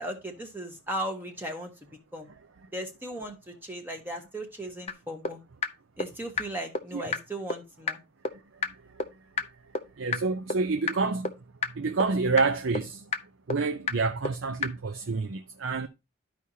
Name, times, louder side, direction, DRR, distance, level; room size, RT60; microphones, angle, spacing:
voice 1, 0.0-1.7 2.1-2.3 2.7-5.4 6.0-8.0, right 1 dB, 10° right, 0.9 m, -37 dB
sound 1, 4.9-5.0 5.2-5.3 5.6-5.7 6.0-6.1 6.4-6.5 6.7-6.8 7.1-7.2 7.5-7.6 7.9-8.0 8.2-8.3 8.6-8.7 9.0-9.1 9.4-9.5 9.7-9.8 10.1-10.2 10.5-10.6 10.9-11.0 11.2-11.3 11.6-11.7 12.0-12.1 12.4-12.5 12.7-12.8 13.1-13.2 13.5-13.6 13.9-14.0 14.2-14.3 14.6-14.7, left 4 dB, 30° left, 0.6 m, -27 dB
voice 2, 10.0-11.3 11.8-13.0 13.5-15.9, right 4 dB, 65° right, 0.6 m, -28 dB
12.5 x 4.9 x 2.8 m
head